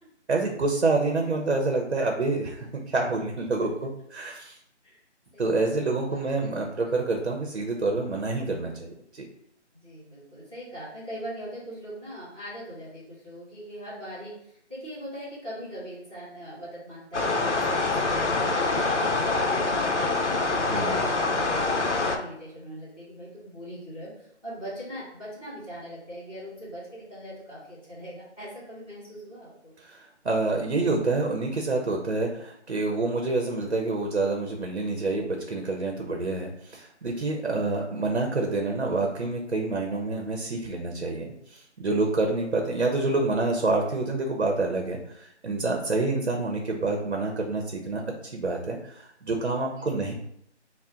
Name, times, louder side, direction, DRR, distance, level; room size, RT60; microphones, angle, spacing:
voice 1, 0.3-4.6 5.4-8.9 9.1-9.3 20.6-21.0 29.8-50.1, right 3 dB, 65° right, 2 dB, 0.7 m, -27 dB
voice 2, 5.3-5.7 6.1-6.5 9.7-29.7 49.7-50.1, equal, 5° right, -15 dB, 1.5 m, -41 dB
sound 1, 17.1-22.2, left 3 dB, 80° left, 0.7 m, -25 dB
3.6 x 2.1 x 4.2 m, 0.73 s
figure-of-eight pair, 175°, 35 cm